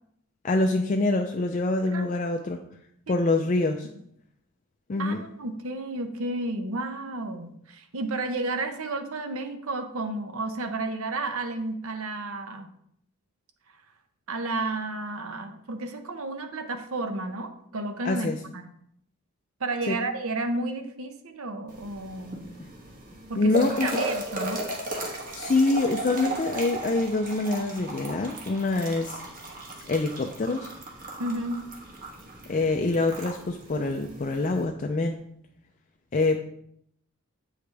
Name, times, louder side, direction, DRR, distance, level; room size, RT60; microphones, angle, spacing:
voice 1, 0.4-2.6 3.1-3.9 4.9-5.2 18.0-18.4 19.9-20.0 22.6-22.7 23.4-24.0 25.4-29.2 29.9-30.7 32.5-35.2 36.1-36.5, left 2 dB, 35° left, 3 dB, 0.4 m, -25 dB
voice 2, 1.9-2.3 3.1-3.3 5.0-12.7 14.3-18.6 19.6-22.5 23.3-24.6 31.2-31.6, right 2 dB, 75° right, 7 dB, 0.8 m, -32 dB
sound 1, 21.7-34.6, right 1 dB, 40° right, 1.3 m, -36 dB
8.1 x 5.0 x 3.3 m, 0.71 s
head